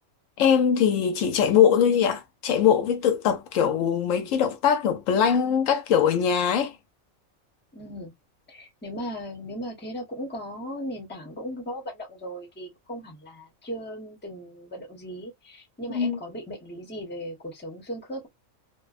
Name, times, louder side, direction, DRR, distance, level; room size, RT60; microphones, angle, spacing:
voice 1, 0.4-6.8 15.9-16.2, left 8 dB, 80° left, 1.0 m, -22 dB
voice 2, 7.7-8.1 8.5-18.3, equal, 10° left, 0.7 m, -37 dB
2.5 x 2.1 x 2.3 m
omnidirectional pair, 1.4 m